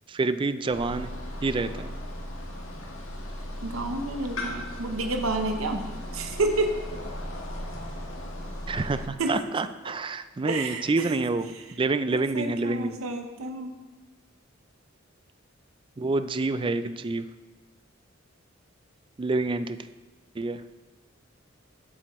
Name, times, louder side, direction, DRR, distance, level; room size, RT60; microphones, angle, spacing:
voice 1, 0.1-1.1 1.4-1.9 8.7-11.5 11.8-13.0 16.0-17.3 19.2-19.8 20.4-20.6, right 3 dB, 25° right, 11 dB, 0.4 m, -27 dB
sound 1, 0.7-9.1, left 1 dB, 85° left, 1.6 m, -37 dB
voice 2, 3.6-5.8 6.1-6.7 9.2-9.4 10.4-11.2 11.5-11.6 12.1-13.8, right 2 dB, 85° right, 5 dB, 0.8 m, -30 dB
12.0 x 7.7 x 3.1 m, 1.2 s
head